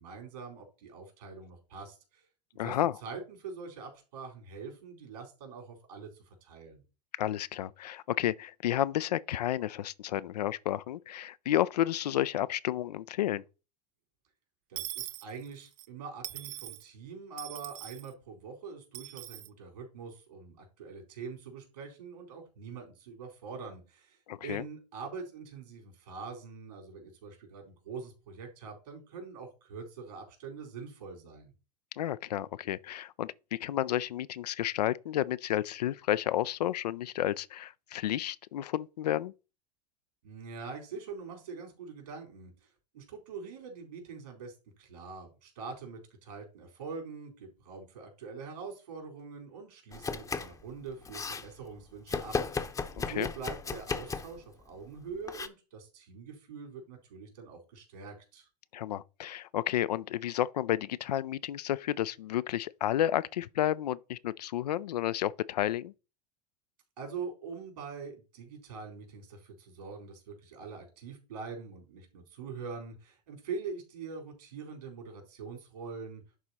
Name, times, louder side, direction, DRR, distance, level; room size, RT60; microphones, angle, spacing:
voice 1, 0.0-2.2 2.6-2.8 3.0-6.1 6.4-6.8 14.7-31.5 40.2-42.7 42.9-58.5 67.0-76.2, right 5 dB, 75° right, 4.1 m, -44 dB
voice 2, 2.6-3.0 7.2-13.4 24.3-24.6 31.9-39.3 53.1-53.3 58.7-65.9, left 12 dB, 75° left, 0.4 m, -31 dB
Dishes pots and pans / Coin (dropping), 14.8-15.9 16.2-16.8 17.4-18.1 18.9-19.5, right 15 dB, 55° right, 0.6 m, -41 dB
Domestic sounds home sounds, 49.9-50.6 50.9-51.5 52.1-54.4 55.3-55.5, left 4 dB, 15° left, 0.8 m, -35 dB
11.0 x 3.9 x 4.2 m
hypercardioid pair, 85°, 21 cm